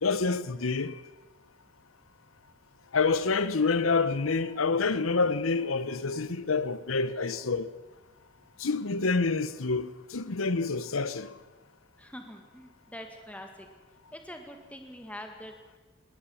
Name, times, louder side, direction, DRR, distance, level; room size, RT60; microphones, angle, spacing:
voice 1, 0.0-1.0 2.9-7.7 8.6-11.3, left 4 dB, 90° left, 1.0 m, -27 dB
voice 2, 12.0-13.7 14.1-15.8, equal, 5° left, 1.9 m, -44 dB
19.5 x 18.5 x 7.2 m
head